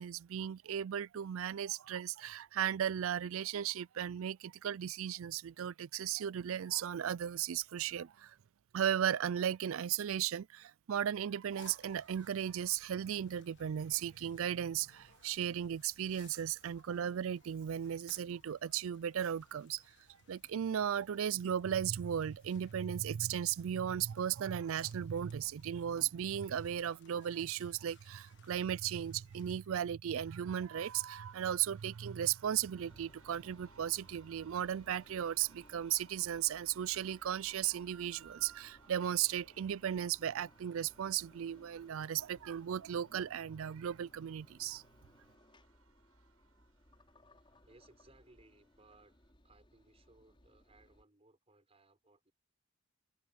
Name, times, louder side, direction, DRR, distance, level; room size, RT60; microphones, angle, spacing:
voice 1, 0.0-8.4 8.7-19.8 20.3-44.8, right 9 dB, 65° right, 0.4 m, -36 dB
sound 1, 11.5-29.7, left 6 dB, 50° left, 1.5 m, -66 dB
sound 2, 30.2-49.3, right 5 dB, 85° right, 6.0 m, -67 dB
Engine, 32.7-51.0, left 1 dB, 25° left, 5.9 m, -64 dB
voice 2, 47.6-49.2 49.4-52.3, right 2 dB, 25° right, 5.2 m, -64 dB
open air
head